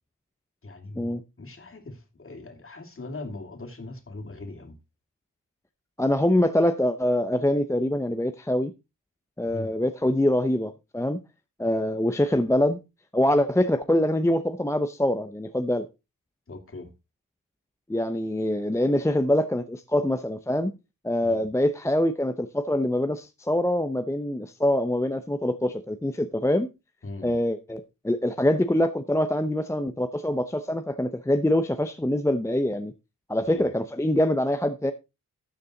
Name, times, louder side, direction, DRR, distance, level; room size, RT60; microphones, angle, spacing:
voice 1, 0.6-4.8 9.5-9.7 16.5-16.9 21.2-21.5 27.0-27.3 33.5-33.7, left 2 dB, 40° left, 2.7 m, -40 dB
voice 2, 6.0-8.7 9.4-11.2 11.6-12.8 13.1-15.9 17.9-20.7 21.0-26.7 27.2-32.9 33.3-34.9, left 1 dB, 10° left, 0.7 m, -24 dB
12.5 x 6.6 x 3.9 m
cardioid pair, 80°, 33 cm